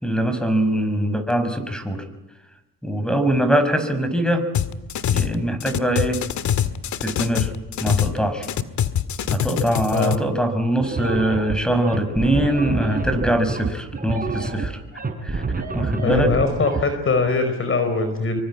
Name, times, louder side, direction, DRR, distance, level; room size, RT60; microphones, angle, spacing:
voice 1, 0.0-2.0 2.8-4.5 5.1-6.2 7.0-7.5 7.8-8.5 9.3-14.8 15.2-15.4 15.7-16.3, right 1 dB, 5° left, 10 dB, 5.9 m, -22 dB
sound 1, 4.5-5.3 5.6-8.2 8.4-10.2, left 9 dB, 70° left, 1.8 m, -24 dB
sound 2, 10.8-16.8, right 4 dB, 30° right, 6.4 m, -27 dB
voice 2, 16.0-18.4, left 3 dB, 45° left, 8 dB, 4.9 m, -22 dB
26.0 x 24.0 x 8.7 m, 0.96 s
cardioid pair, 90°, 30 cm